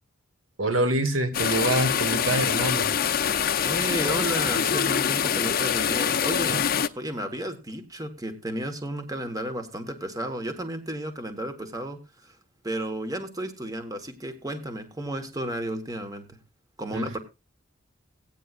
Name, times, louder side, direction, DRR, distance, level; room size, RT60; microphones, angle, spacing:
voice 1, 0.6-3.0 6.5-6.6 16.9-17.1, right 1 dB, 85° right, 1.6 m, -26 dB
sound 1, 1.3-6.9, left 8 dB, 45° left, 0.6 m, -24 dB
voice 2, 3.6-6.6 7.0-12.4 12.6-16.4 16.8-17.2, right 1 dB, 20° right, 1.4 m, -33 dB
16.5 x 9.3 x 2.5 m
head